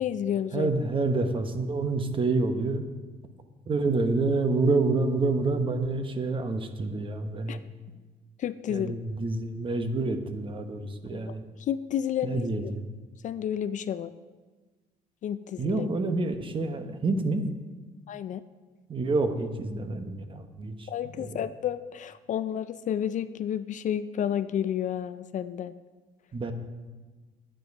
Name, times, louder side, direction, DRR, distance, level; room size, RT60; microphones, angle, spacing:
voice 1, 0.0-0.7 7.5-7.6 8.4-8.9 11.1-12.7 13.2-14.1 15.2-15.9 18.1-18.4 20.9-25.7, left 9 dB, 50° left, 13 dB, 0.4 m, -31 dB
voice 2, 0.5-2.8 3.7-7.6 8.7-11.4 12.2-12.8 15.6-17.4 18.9-20.9 21.2-21.4 26.3-26.5, right 3 dB, 30° right, 8 dB, 1.0 m, -28 dB
9.3 x 8.9 x 5.4 m, 1.3 s
cardioid pair, 110°, 17 cm